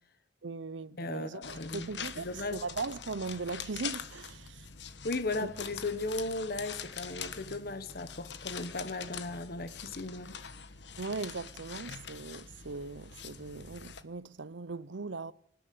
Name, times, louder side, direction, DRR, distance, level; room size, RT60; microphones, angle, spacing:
voice 1, 0.4-4.7 5.4-5.5 11.0-15.3, right 4 dB, 90° right, 0.8 m, -39 dB
voice 2, 1.0-1.9 2.2-2.6 5.0-10.4, left 2 dB, 55° left, 1.2 m, -36 dB
sound 1, 1.4-14.0, left 7 dB, 70° left, 1.4 m, -44 dB
27.0 x 10.5 x 9.4 m
head